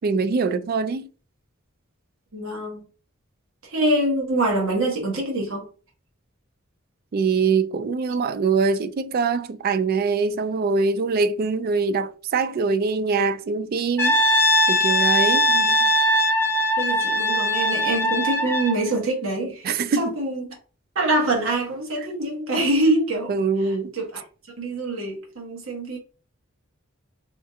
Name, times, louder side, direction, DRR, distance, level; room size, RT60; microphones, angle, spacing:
voice 1, 0.0-1.1 7.1-14.1 14.7-15.5 19.6-20.1 22.5-22.6 23.3-23.9, right 4 dB, 45° right, 0.3 m, -23 dB
voice 2, 2.3-2.8 3.6-5.6 15.5-15.9 16.8-20.6 20.9-23.3 23.6-24.2 24.6-26.0, right 1 dB, 80° right, 1.3 m, -25 dB
Brass instrument, 14.0-18.8, equal, 10° left, 0.7 m, -20 dB
3.6 x 2.3 x 2.7 m
head